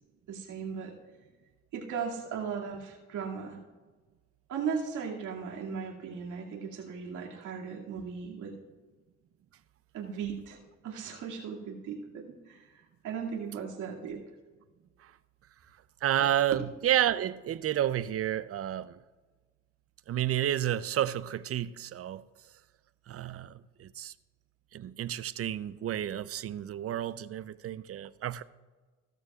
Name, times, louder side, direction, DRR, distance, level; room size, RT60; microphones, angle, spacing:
voice 1, 0.3-0.9 1.7-3.6 4.5-8.6 9.9-12.7 13.0-14.2 16.5-16.6, right 6 dB, 80° right, 2.4 m, -37 dB
voice 2, 16.0-19.0 20.1-22.2 23.1-24.1 24.7-28.4, right 11 dB, 50° right, 0.5 m, -30 dB
15.5 x 13.5 x 2.4 m
cardioid pair, 90°, 30 cm